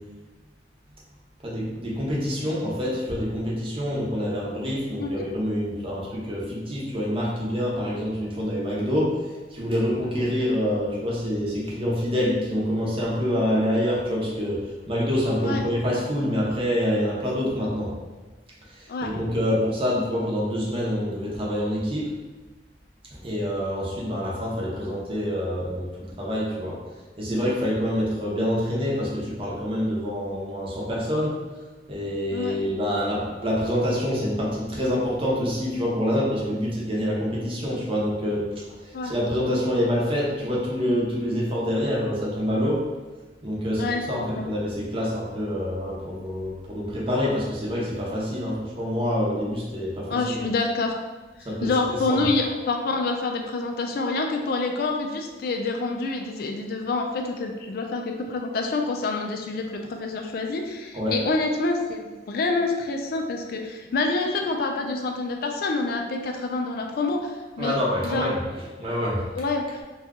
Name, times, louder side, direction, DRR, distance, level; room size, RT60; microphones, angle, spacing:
voice 1, 1.4-9.2 9.5-14.6 14.9-17.9 18.7-22.1 23.1-26.8 27.2-31.4 31.9-42.8 43.4-50.5 51.4-51.7 52.1-52.2 60.9-61.2 67.6-68.4 68.8-69.2, equal, 30° right, -4 dB, 0.7 m, -26 dB
voice 2, 43.8-44.5 50.1-51.0 51.6-67.8 68.0-68.3 69.4-69.8, left 3 dB, 55° left, 3 dB, 0.3 m, -27 dB
2.8 x 2.3 x 3.5 m, 1.2 s
head